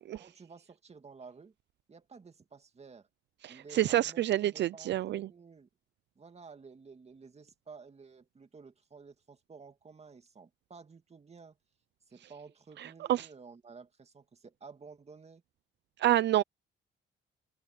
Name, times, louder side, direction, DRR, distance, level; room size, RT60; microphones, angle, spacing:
voice 1, 0.2-1.5 1.9-3.1 3.5-5.7 6.2-11.6 12.1-15.4, right 5 dB, 30° right, 2.3 m, -52 dB
voice 2, 3.4-5.3 12.8-13.3 16.0-16.4, right 13 dB, 65° right, 0.5 m, -28 dB
cardioid pair, 90°, 20 cm